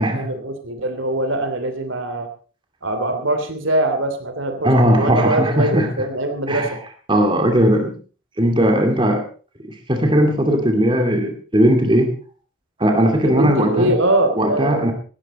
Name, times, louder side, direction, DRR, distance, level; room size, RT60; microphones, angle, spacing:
voice 1, 0.0-2.3 2.8-6.8 13.2-14.9, right 1 dB, 75° right, 8 dB, 3.0 m, -22 dB
voice 2, 4.6-5.9 6.5-6.7 7.1-8.0 8.4-9.2 9.6-12.2 12.8-13.9 14.4-14.9, equal, 25° right, 4 dB, 2.4 m, -18 dB
18.0 x 14.0 x 4.2 m, 0.38 s
head